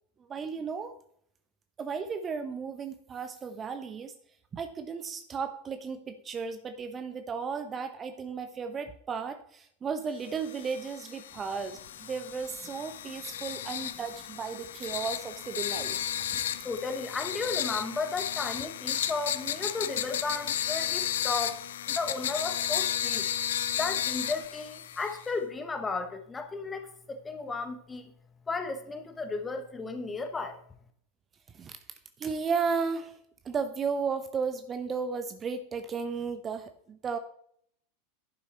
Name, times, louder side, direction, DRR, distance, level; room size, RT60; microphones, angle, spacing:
voice 1, 0.3-0.9 1.8-4.1 4.5-16.0 16.3-16.4 31.5-31.8 32.2-33.1 33.4-37.2, right 5 dB, 25° right, 9 dB, 0.8 m, -34 dB
sound 1, 10.4-25.3, left 10 dB, 65° left, 0.5 m, -33 dB
voice 2, 16.6-21.6 21.9-23.3 23.7-28.1 28.5-30.6, left 3 dB, 15° left, 7 dB, 1.3 m, -34 dB
11.0 x 6.2 x 4.3 m, 0.65 s
figure-of-eight pair, 85°, 0 cm